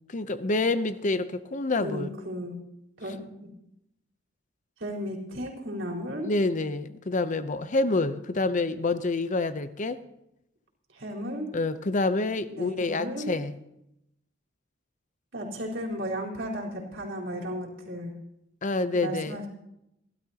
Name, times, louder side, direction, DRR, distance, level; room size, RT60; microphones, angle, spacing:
voice 1, 0.1-2.1 6.2-10.0 11.5-13.5 18.6-19.4, left 2 dB, 40° left, 12 dB, 0.7 m, -27 dB
voice 2, 1.8-2.6 3.0-3.5 4.8-6.3 10.9-11.5 12.5-13.3 15.3-18.1 18.9-19.5, equal, 75° right, -2 dB, 4.1 m, -34 dB
28.5 x 13.0 x 2.9 m, 0.82 s
head